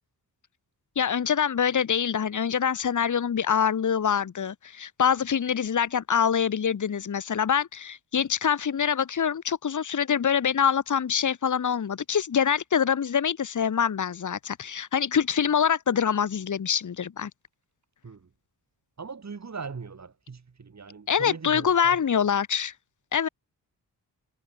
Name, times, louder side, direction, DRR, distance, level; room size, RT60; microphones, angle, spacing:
voice 1, 1.0-17.3 21.1-22.7 23.1-23.3, left 7 dB, 55° left, 1.7 m, -25 dB
voice 2, 19.0-22.0, right 5 dB, 45° right, 7.6 m, -40 dB
cardioid pair, 85°, 37 cm